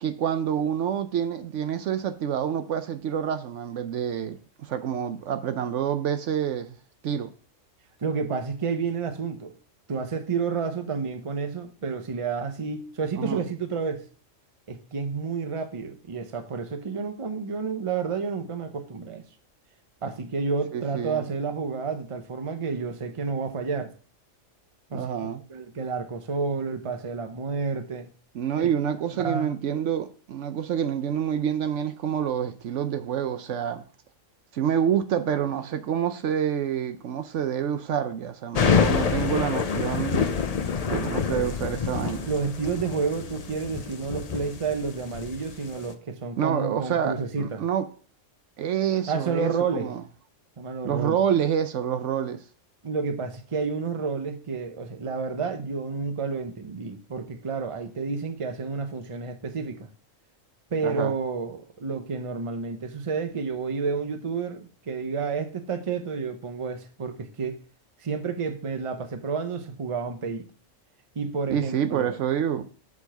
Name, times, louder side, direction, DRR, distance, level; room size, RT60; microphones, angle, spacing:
voice 1, 0.0-6.8 7.0-7.3 13.2-13.4 20.7-21.3 24.9-25.4 28.3-33.8 34.5-40.3 40.9-42.3 46.4-47.9 48.6-50.0 50.8-52.4 60.8-61.1 71.5-72.7, right 9 dB, 70° right, 0.9 m, -27 dB
voice 2, 8.0-9.5 9.9-14.0 14.7-19.2 20.0-23.9 24.9-25.1 25.5-28.1 28.9-29.5 42.3-47.6 49.1-49.9 50.6-51.2 52.8-59.9 60.7-67.6 68.0-70.5 71.1-72.2, right 5 dB, 30° right, 0.7 m, -30 dB
sound 1, 38.5-45.9, left 6 dB, 45° left, 0.5 m, -27 dB
6.6 x 4.8 x 5.8 m
omnidirectional pair, 1.3 m